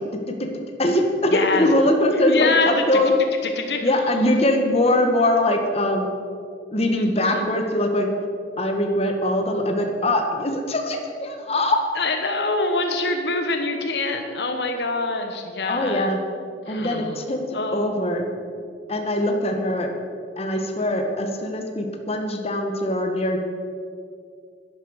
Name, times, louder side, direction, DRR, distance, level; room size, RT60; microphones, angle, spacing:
voice 1, 0.8-3.1 3.8-6.1 6.7-8.1 8.6-11.8 15.7-16.2 16.7-17.4 17.7-18.3 18.9-19.9 20.4-23.4, left 1 dB, 35° left, 3 dB, 1.4 m, -22 dB
voice 2, 1.3-1.7 2.3-2.8 3.6-3.9 6.9-7.5 12.0-16.1 16.7-17.2 17.5-18.0, left 3 dB, 70° left, 5 dB, 1.2 m, -25 dB
11.0 x 10.5 x 6.5 m, 2.3 s
head